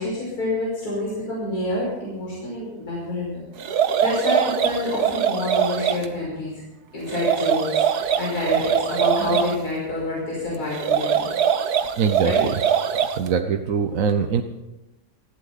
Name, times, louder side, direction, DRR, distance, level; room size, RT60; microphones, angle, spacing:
voice 1, 0.0-3.4 3.7-6.6 6.9-11.3 12.2-12.4, left 2 dB, 75° left, -6 dB, 6.2 m, -27 dB
sound 1, 3.6-6.1 7.1-9.6 10.7-13.3, right 8 dB, 85° right, 1.5 m, -22 dB
voice 2, 12.0-12.5 13.2-14.4, right 6 dB, 65° right, 6 dB, 1.2 m, -22 dB
19.5 x 15.5 x 4.1 m, 1.0 s
omnidirectional pair, 1.6 m